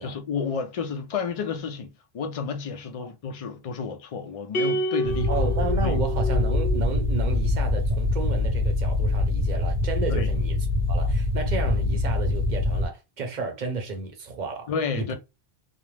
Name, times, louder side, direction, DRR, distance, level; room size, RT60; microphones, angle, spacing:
voice 1, 0.0-5.3 5.8-6.0 10.1-10.3 14.7-15.1, left 5 dB, 55° left, 0.4 m, -31 dB
sound 1, 4.5-7.0, right 1 dB, 70° left, 0.9 m, -29 dB
sound 2, 5.0-12.9, left 2 dB, 80° right, 0.9 m, -24 dB
voice 2, 5.3-10.6 10.9-14.7 14.9-15.1, right 3 dB, 55° right, 0.7 m, -32 dB
2.5 x 2.0 x 3.1 m
omnidirectional pair, 1.0 m